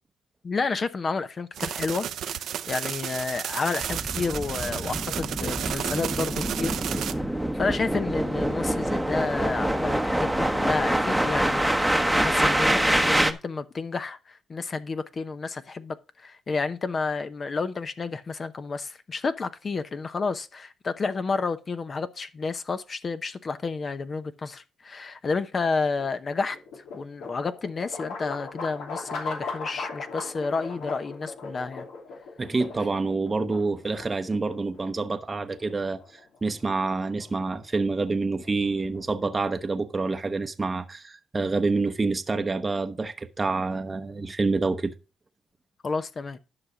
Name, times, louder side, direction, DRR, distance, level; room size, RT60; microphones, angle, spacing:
voice 1, 0.4-6.8 7.0-26.6 26.9-31.9 45.8-46.4, left 4 dB, 40° left, 0.8 m, -31 dB
sound 1, 1.5-7.1, right 9 dB, 70° right, 0.7 m, -32 dB
sound 2, 3.8-13.3, right 1 dB, 5° right, 1.0 m, -25 dB
sound 3, 26.2-39.7, left 4 dB, 80° left, 2.8 m, -40 dB
voice 2, 32.4-36.0 36.4-44.9, right 3 dB, 25° right, 0.8 m, -27 dB
11.0 x 5.8 x 4.9 m
cardioid pair, 90°, 0 cm